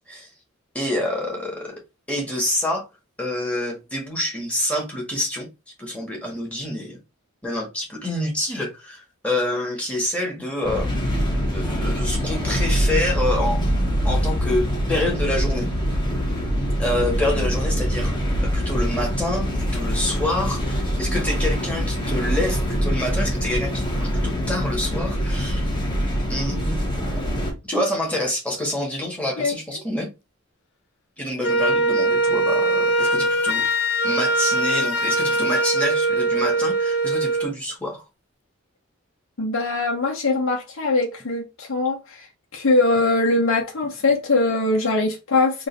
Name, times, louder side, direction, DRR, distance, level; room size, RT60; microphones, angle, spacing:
voice 1, 0.7-1.8 2.1-2.8 3.2-5.5 5.8-7.0 7.4-10.9 11.5-13.6 14.0-15.7 16.8-25.6 26.3-26.8 27.7-30.1 31.2-33.6 34.0-38.0, left 1 dB, 5° left, 1.6 m, -27 dB
sound 1, 10.6-27.5, equal, 20° left, 1.4 m, -24 dB
Wind instrument woodwind instrument, 31.4-37.5, right 2 dB, 55° left, 0.5 m, -21 dB
voice 2, 39.4-42.3 42.5-45.7, left 2 dB, 80° left, 0.9 m, -21 dB
3.8 x 2.6 x 3.8 m
head